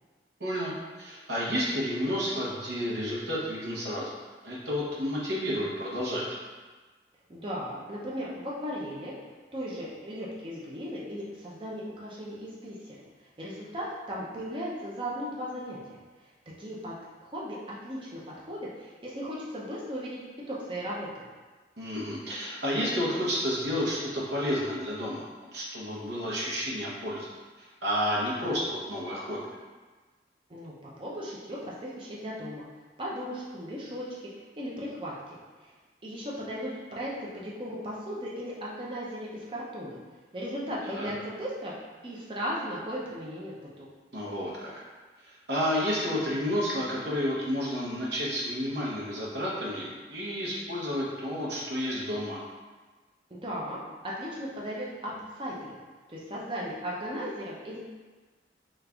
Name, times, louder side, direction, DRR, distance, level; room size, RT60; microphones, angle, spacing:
voice 1, 0.4-0.7 1.0-4.1 4.4-6.2 21.8-27.3 27.6-29.5 40.9-41.1 44.1-44.7 45.2-52.4, equal, 70° right, -5 dB, 0.9 m, -31 dB
voice 2, 7.3-9.1 9.5-13.0 13.4-16.0 16.6-17.0 17.2-20.2 20.5-21.2 30.5-32.6 33.0-34.3 34.6-35.1 35.6-35.7 36.0-40.0 40.3-41.7 42.0-43.9 53.3-55.8 56.1-57.8, equal, 30° right, -5 dB, 0.6 m, -36 dB
3.1 x 2.4 x 3.4 m, 1.3 s
head